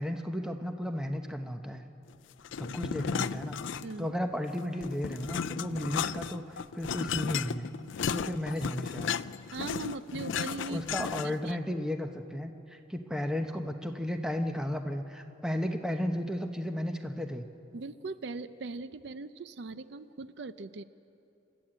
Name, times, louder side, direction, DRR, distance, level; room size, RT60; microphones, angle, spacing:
voice 1, 0.0-1.8 2.6-3.6 4.0-7.7 8.0-9.2 10.7-17.5, left 1 dB, 5° right, 5 dB, 0.9 m, -34 dB
sound 1, 2.4-4.1 4.5-11.5, left 7 dB, 85° left, 0.4 m, -34 dB
voice 2, 9.5-10.8 11.2-11.6 17.7-20.8, right 3 dB, 65° right, 13 dB, 0.5 m, -40 dB
27.0 x 13.0 x 8.8 m, 2.9 s
head